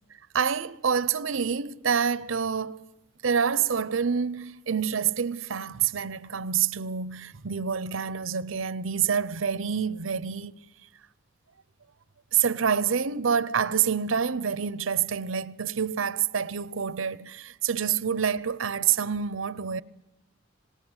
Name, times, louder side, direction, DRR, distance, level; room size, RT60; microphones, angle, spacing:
voice 1, 0.3-2.9 3.2-10.5 12.3-19.8, right 7 dB, 85° right, 0.7 m, -27 dB
26.0 x 19.0 x 8.1 m
head